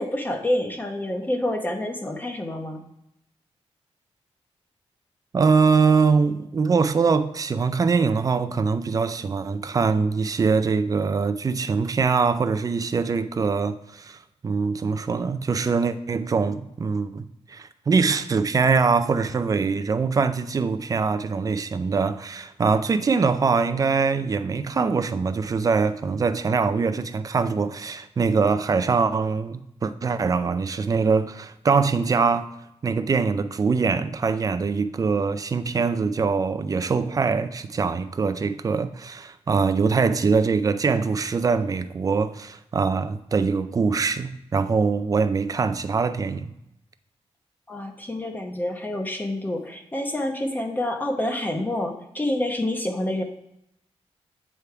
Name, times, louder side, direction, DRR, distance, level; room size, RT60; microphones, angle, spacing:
voice 1, 0.0-2.8 47.7-53.2, left 1 dB, 15° left, 0.9 m, -27 dB
voice 2, 5.3-17.2 17.5-32.5 32.8-46.5, right 5 dB, 35° right, 0.4 m, -23 dB
8.3 x 3.5 x 4.6 m
wide cardioid pair, 120°, 11 cm